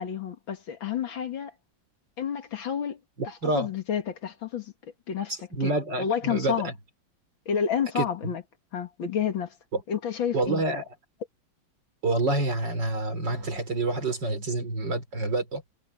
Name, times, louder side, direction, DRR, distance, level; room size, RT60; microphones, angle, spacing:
voice 1, 0.0-1.5 2.2-3.0 3.2-5.3 5.6-5.7 6.0-6.7 7.5-8.4 8.7-9.5 9.9-10.6, left 8 dB, 85° left, 2.6 m, -30 dB
voice 2, 3.2-3.7 5.3-6.7 7.9-8.0 9.7-9.8 10.3-10.8 12.0-15.6, right 2 dB, 65° right, 4.8 m, -27 dB
omnidirectional pair, 2.1 m